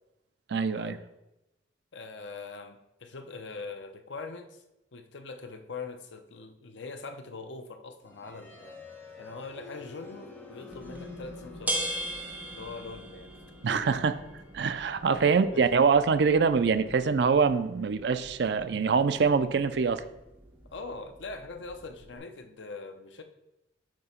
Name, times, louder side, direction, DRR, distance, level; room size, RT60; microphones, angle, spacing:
voice 1, 0.5-1.0 13.6-14.2 14.5-20.0, right 5 dB, 60° right, 12 dB, 0.4 m, -24 dB
voice 2, 1.9-4.6 4.9-8.8 9.2-11.9 12.5-13.3 13.7-14.0 15.2-15.7 20.7-23.2, left 3 dB, 70° left, 7 dB, 0.6 m, -42 dB
sound 1, 8.0-19.9, left 3 dB, 10° left, 1.0 m, -49 dB
sound 2, 10.7-22.2, right 1 dB, 10° right, 0.7 m, -41 dB
7.4 x 2.9 x 5.6 m, 0.93 s
head